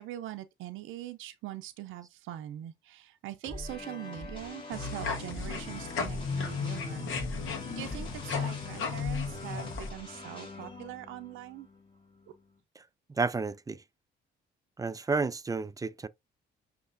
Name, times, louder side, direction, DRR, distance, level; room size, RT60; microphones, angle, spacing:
voice 1, 0.0-7.1 7.4-11.7, right 13 dB, 90° right, 0.5 m, -42 dB
sound 1, 3.4-12.6, left 2 dB, 25° left, 2.0 m, -43 dB
sound 2, 4.7-9.9, left 5 dB, 80° left, 1.2 m, -35 dB
voice 2, 13.2-13.8 14.8-16.1, right 4 dB, 20° right, 0.4 m, -31 dB
6.4 x 2.9 x 2.5 m
cardioid pair, 90°, 20 cm